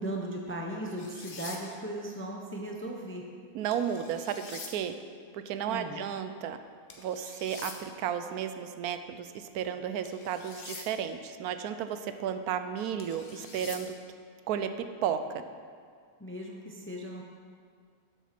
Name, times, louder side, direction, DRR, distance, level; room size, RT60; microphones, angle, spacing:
voice 1, 0.0-3.3 5.7-6.0 16.2-17.2, right 1 dB, 15° left, 0 dB, 0.4 m, -37 dB
sound 1, 1.0-1.6 3.7-4.7 6.9-7.8 10.0-10.9 13.0-13.8, left 4 dB, 45° left, 0.9 m, -45 dB
voice 2, 3.5-5.0 5.3-6.6 7.0-13.9 14.5-15.2, right 8 dB, 90° right, 9 dB, 1.1 m, -33 dB
7.4 x 7.1 x 5.8 m, 2.1 s
omnidirectional pair, 1.5 m